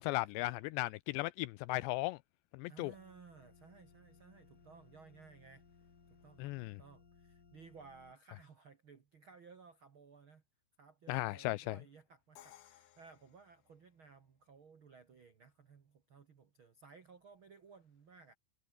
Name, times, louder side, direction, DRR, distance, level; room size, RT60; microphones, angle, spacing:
voice 1, 0.0-2.2 2.5-2.9 6.4-6.8 11.1-11.8, left 20 dB, 85° left, 2.5 m, -36 dB
voice 2, 2.7-5.6 6.1-10.4 10.8-18.3, right 5 dB, 85° right, 1.1 m, -59 dB
sound 1, 2.9-8.1, left 5 dB, 35° left, 1.7 m, -64 dB
Crash cymbal, 12.4-14.3, left 13 dB, 65° left, 3.2 m, -61 dB
omnidirectional pair, 5.4 m